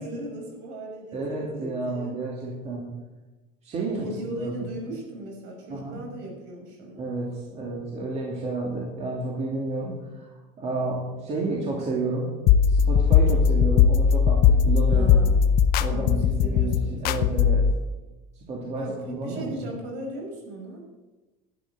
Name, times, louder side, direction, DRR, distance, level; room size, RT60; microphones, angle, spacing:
voice 1, 0.0-2.1 3.9-7.1 14.9-15.4 15.9-17.4 18.8-20.8, right 1 dB, 65° right, 1 dB, 6.1 m, -37 dB
voice 2, 1.1-2.8 3.6-4.5 5.7-6.0 7.0-10.3 10.6-12.3 12.7-15.1 15.8-17.6 18.5-19.5, right 2 dB, 35° right, -3 dB, 2.8 m, -31 dB
sound 1, 12.5-17.7, left 7 dB, 50° left, 0.7 m, -19 dB
12.0 x 9.0 x 8.0 m, 1.1 s
cardioid pair, 145°, 20 cm